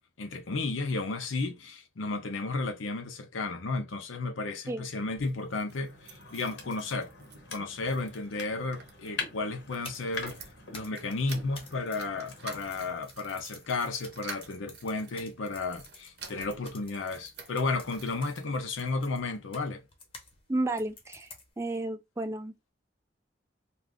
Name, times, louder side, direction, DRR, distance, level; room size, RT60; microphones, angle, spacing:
voice 1, 0.2-7.1 7.5-10.4 10.7-19.8, left 3 dB, 90° left, 0.6 m, -33 dB
sound 1, 5.0-19.0 19.6-20.5 20.8-20.9 21.1-21.2, right 5 dB, 55° right, 0.7 m, -50 dB
sound 2, 5.7-13.1, left 4 dB, 70° left, 1.0 m, -44 dB
sound 3, 9.6-20.3 20.8-21.8, left 3 dB, 25° left, 0.8 m, -51 dB
voice 2, 20.5-21.3 21.6-22.5, right 2 dB, 15° right, 0.3 m, -32 dB
2.5 x 2.4 x 3.4 m
head